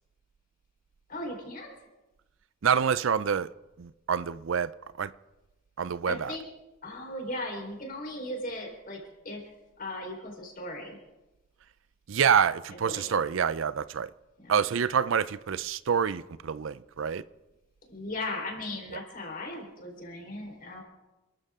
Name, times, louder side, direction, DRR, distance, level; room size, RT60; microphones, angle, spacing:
voice 1, 1.1-1.7 6.1-6.5 6.8-9.5 9.8-11.0 12.8-13.2 14.4-14.5 17.9-20.8, left 1 dB, 40° left, 4.1 m, -37 dB
voice 2, 2.6-3.5 3.8-4.7 5.0-5.1 5.8-6.4 12.1-14.1 14.5-17.2, right 7 dB, 65° right, 0.4 m, -27 dB
28.0 x 13.0 x 3.6 m
head